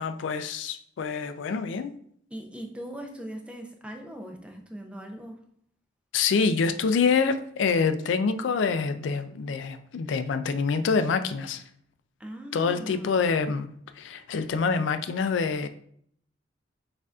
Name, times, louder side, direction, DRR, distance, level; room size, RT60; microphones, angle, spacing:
voice 1, 0.0-1.9 6.1-11.6 12.5-13.7 14.0-15.7, left 5 dB, 75° left, 10 dB, 0.4 m, -26 dB
voice 2, 2.3-5.4 12.2-13.2, right 1 dB, 5° right, 3 dB, 0.5 m, -40 dB
6.4 x 2.6 x 2.3 m, 0.64 s
head